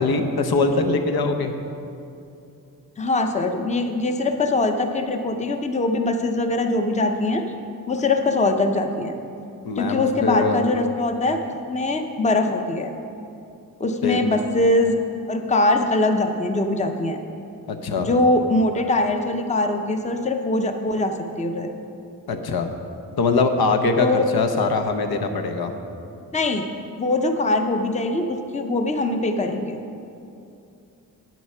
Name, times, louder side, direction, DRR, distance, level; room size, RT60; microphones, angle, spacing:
voice 1, 0.0-1.5 9.6-10.6 14.0-14.3 17.7-18.1 22.3-22.7 23.2-25.7, left 3 dB, 80° left, 6 dB, 0.9 m, -22 dB
voice 2, 3.0-7.4 7.9-9.1 9.8-11.4 11.7-12.9 13.8-15.0 15.3-17.2 18.0-21.7 24.0-24.3 26.3-26.6 27.0-29.8, left 2 dB, 20° left, 5 dB, 0.6 m, -22 dB
9.2 x 8.9 x 5.5 m, 2.6 s
wide cardioid pair, 130°, 36 cm